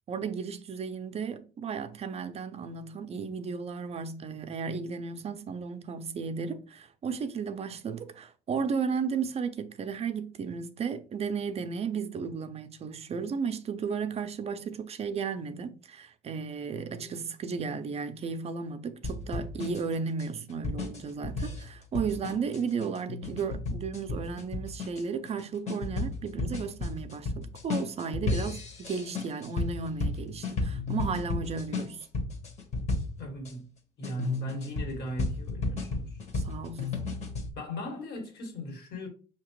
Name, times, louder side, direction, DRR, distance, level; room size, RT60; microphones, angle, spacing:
voice 1, 0.1-32.1 36.3-36.9, right 5 dB, 40° right, 0.4 m, -34 dB
sound 1, 19.0-33.5 34.0-37.5, left 3 dB, 40° left, 1.1 m, -34 dB
voice 2, 33.2-33.7 34.0-36.2 37.5-39.1, equal, 75° left, 1.8 m, -38 dB
5.8 x 2.8 x 3.0 m
cardioid pair, 110°, 17 cm